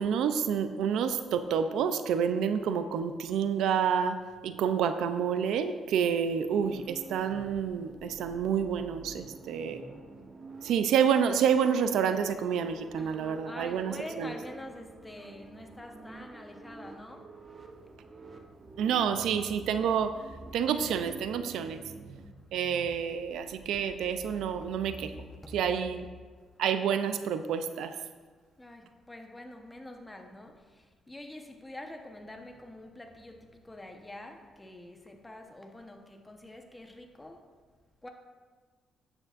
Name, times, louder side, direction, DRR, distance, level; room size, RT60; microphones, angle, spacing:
voice 1, 0.0-4.2 4.4-9.8 10.6-14.3 18.8-20.1 20.5-21.8 22.5-25.1 25.5-26.0 26.6-27.9, right 7 dB, 80° right, 9 dB, 0.5 m, -28 dB
sound 1, 6.6-26.1, right 3 dB, 35° right, 1.0 m, -49 dB
voice 2, 13.0-17.3 25.4-25.5 28.6-37.4 38.0-38.1, left 1 dB, 15° left, 4 dB, 1.1 m, -46 dB
11.0 x 8.9 x 2.6 m, 1.5 s
cardioid pair, 90°, 0 cm